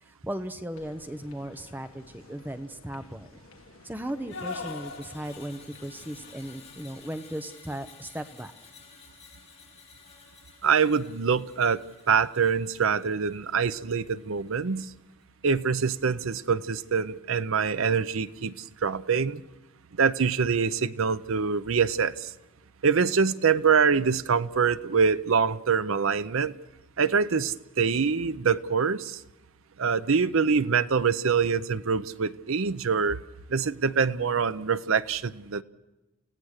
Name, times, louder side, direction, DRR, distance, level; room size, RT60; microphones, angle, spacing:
voice 1, 0.0-3.3 3.8-8.5, right 1 dB, 10° right, 0.8 m, -37 dB
sound 1, 0.8-7.3, left 3 dB, 75° left, 1.7 m, -45 dB
Screech, 4.3-14.6 14.9-15.2, left 5 dB, 30° left, 5.9 m, -53 dB
voice 2, 10.6-14.9 15.4-19.4 20.0-22.3 22.8-26.5 27.0-29.2 29.8-33.2 33.5-35.6, right 5 dB, 65° right, 0.6 m, -25 dB
29.0 x 16.5 x 6.5 m
head